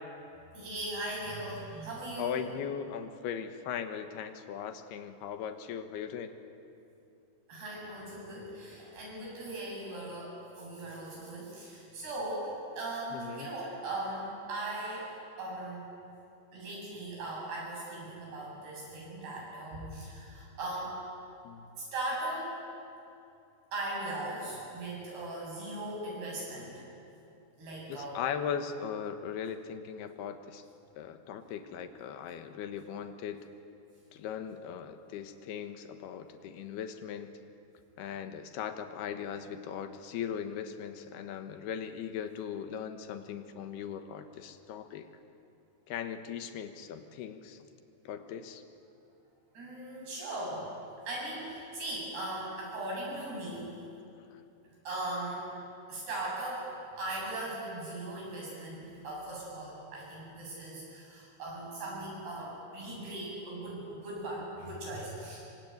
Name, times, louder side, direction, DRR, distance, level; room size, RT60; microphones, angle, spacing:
voice 1, 0.5-2.4 7.5-15.1 15.4-15.9 16.5-21.0 21.9-22.6 23.7-26.8 27.6-28.2 49.5-50.7 51.1-53.7 54.8-55.5 55.9-56.7 57.0-65.4, right 1 dB, 85° right, -4 dB, 10.0 m, -39 dB
voice 2, 2.2-6.4 13.1-13.5 21.4-21.7 27.9-30.6 31.0-33.5 34.1-37.3 38.0-45.1 45.9-47.6 48.1-48.6, left 8 dB, 85° left, 8 dB, 3.3 m, -39 dB
26.0 x 23.5 x 9.5 m, 2.7 s
omnidirectional pair, 4.5 m